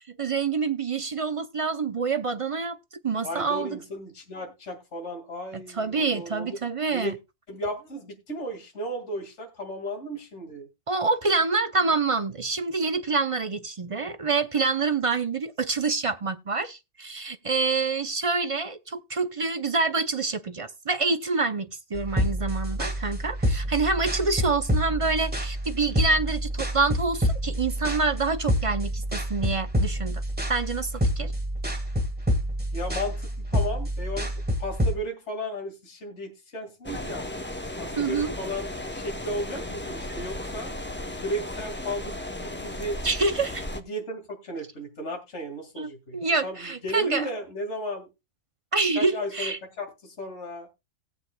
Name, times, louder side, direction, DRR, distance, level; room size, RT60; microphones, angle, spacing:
voice 1, 0.2-2.8 3.0-3.8 5.5-7.2 10.9-30.2 30.5-31.3 37.9-38.4 43.0-43.7 45.8-47.3 48.7-49.6, right 4 dB, 40° right, 0.5 m, -27 dB
voice 2, 3.2-6.6 6.9-7.1 7.5-10.7 32.7-34.3 34.6-37.2 37.8-40.7 41.2-43.0 43.7-48.1 48.9-50.7, equal, 65° left, 2.5 m, -34 dB
sound 1, 21.9-35.0, equal, 10° right, 1.6 m, -28 dB
sound 2, 36.8-43.8, left 1 dB, 10° left, 0.6 m, -35 dB
18.5 x 8.0 x 2.2 m
omnidirectional pair, 1.3 m